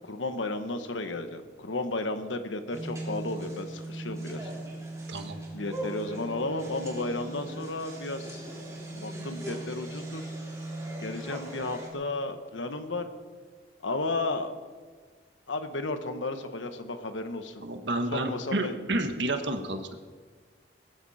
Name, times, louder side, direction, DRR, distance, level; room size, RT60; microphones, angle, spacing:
voice 1, 0.0-4.5 5.5-8.4 8.9-10.3 11.0-13.1 13.8-14.5 15.5-17.6 18.1-18.7, left 2 dB, 85° left, 8 dB, 1.4 m, -33 dB
sound 1, 2.7-11.9, right 1 dB, 15° right, 3.2 m, -38 dB
voice 2, 17.6-19.9, right 1 dB, 70° right, 6 dB, 1.5 m, -30 dB
21.0 x 14.5 x 4.3 m, 1.5 s
head